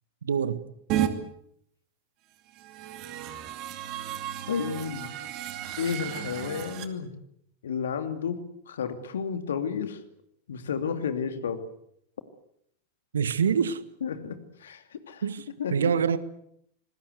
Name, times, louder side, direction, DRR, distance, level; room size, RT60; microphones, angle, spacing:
voice 1, 0.2-0.7 13.1-13.8 15.2-15.4 15.7-16.2, right 7 dB, 70° right, 16 dB, 1.5 m, -25 dB
sound 1, 0.9-1.1 2.5-6.9, right 11 dB, 40° right, 2.5 m, -33 dB
voice 2, 4.5-5.1 5.8-7.1 7.6-10.0 10.5-11.6 14.0-15.3 15.6-15.9, left 6 dB, 65° left, 9 dB, 2.6 m, -32 dB
27.0 x 20.5 x 8.2 m, 0.72 s
figure-of-eight pair, 90°, 0 cm